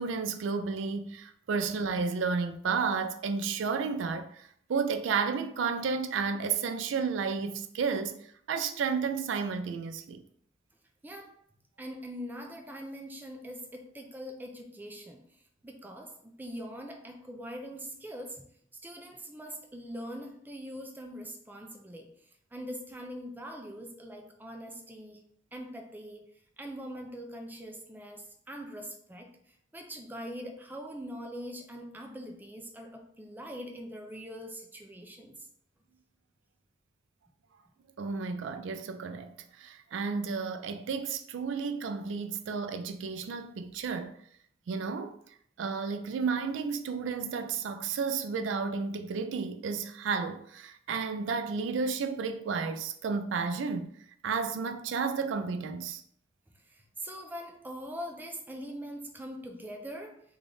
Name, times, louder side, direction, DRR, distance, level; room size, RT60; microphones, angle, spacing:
voice 1, 0.0-8.1 8.5-10.2 38.0-44.2 44.7-45.2 45.6-53.9 54.2-56.0, right 5 dB, 85° right, 0.3 m, -32 dB
voice 2, 11.0-11.4 11.8-15.2 15.6-18.5 18.8-22.1 22.5-25.2 25.5-26.3 26.6-29.3 29.7-35.5 56.7-60.2, equal, 10° right, 0.4 m, -42 dB
3.4 x 2.3 x 3.8 m
head